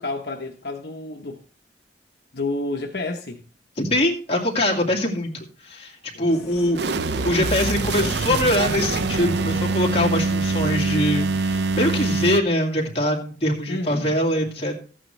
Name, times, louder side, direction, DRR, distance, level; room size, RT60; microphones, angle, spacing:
voice 1, 0.0-1.4 2.3-3.5 6.1-6.4 6.8-6.9 13.7-14.2, left 2 dB, 65° left, 1.0 m, -30 dB
voice 2, 3.8-5.9 6.2-6.8 7.2-14.8, left 1 dB, 35° left, 2.2 m, -23 dB
sound 1, 6.3-12.1, left 1 dB, ahead, 0.8 m, -40 dB
sound 2, 6.7-12.4, right 3 dB, 65° right, 0.6 m, -24 dB
14.0 x 8.9 x 3.3 m
head